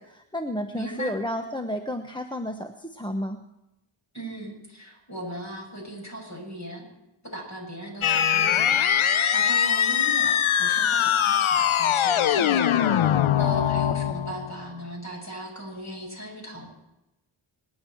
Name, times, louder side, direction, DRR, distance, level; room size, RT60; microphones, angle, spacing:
voice 1, 0.0-3.4, left 1 dB, 10° left, 4 dB, 1.0 m, -31 dB
voice 2, 0.7-1.1 4.1-6.9 7.3-10.3 10.6-16.7, right 1 dB, 35° left, 0 dB, 6.9 m, -38 dB
sound 1, 8.0-14.5, left 9 dB, 75° left, 0.7 m, -22 dB
25.5 x 10.0 x 4.6 m, 0.90 s
wide cardioid pair, 60°, 49 cm